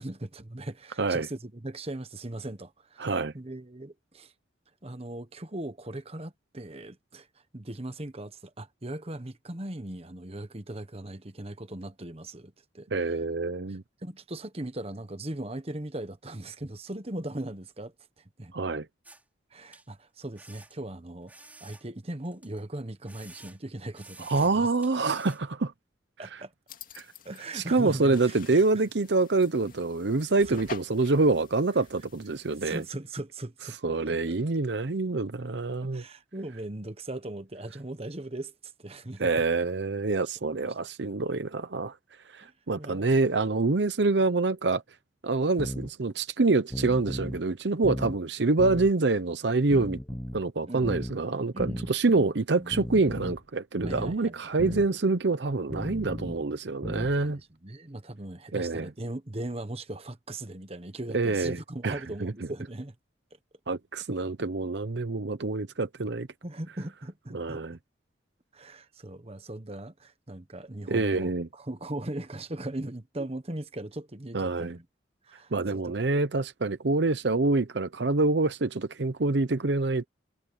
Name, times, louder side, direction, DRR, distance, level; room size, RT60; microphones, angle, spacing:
voice 1, 0.0-4.3 4.8-7.3 7.5-13.2 13.7-18.5 19.5-24.7 26.2-26.5 27.2-28.6 30.5-30.6 32.6-34.4 35.9-39.3 40.6-40.7 42.4-43.3 50.7-51.0 51.5-51.8 52.1-52.3 52.6-52.7 53.8-54.6 57.2-62.9 66.4-67.6 68.5-74.8 75.2-75.9, right 1 dB, 35° right, 1.3 m, -39 dB
voice 2, 3.0-3.3 12.9-13.8 18.5-18.9 24.3-25.7 27.0-27.1 27.5-32.8 33.8-36.0 39.2-41.9 42.3-44.8 45.2-50.0 50.3-57.4 58.5-58.9 61.1-61.6 61.8-62.3 63.7-66.3 67.3-67.8 70.9-71.5 74.3-74.8 75.5-80.1, right 3 dB, 70° right, 0.8 m, -26 dB
sound 1, 19.0-19.2 19.7-19.9 20.3-20.8 21.3-22.6 23.0-23.7 23.9-24.6 24.8-25.4, right 2 dB, 10° right, 2.9 m, -51 dB
sound 2, 26.7-32.9, left 5 dB, 50° left, 2.3 m, -49 dB
sound 3, 45.6-45.9 46.7-47.4 47.8-48.2 48.6-48.9 49.7-50.4 50.8-51.2 51.6-51.9 52.7-53.4 53.8-54.2 54.6-54.9 55.7-56.4 56.8-57.2, equal, 10° left, 0.8 m, -35 dB
head